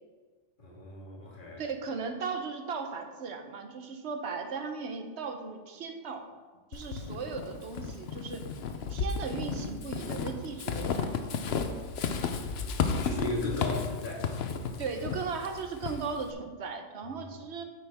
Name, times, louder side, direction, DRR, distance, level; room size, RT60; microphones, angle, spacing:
voice 1, 0.6-1.6 6.9-7.1 12.2-14.3, left 2 dB, 40° left, -3 dB, 2.0 m, -37 dB
voice 2, 1.6-6.2 6.7-8.4 8.9-11.4 14.8-17.6, right 5 dB, 65° right, 5 dB, 1.1 m, -37 dB
Walk footsteps / Squeak, 6.7-16.3, left 5 dB, 65° left, 0.8 m, -33 dB
9.0 x 7.7 x 3.5 m, 1.4 s
omnidirectional pair, 1.3 m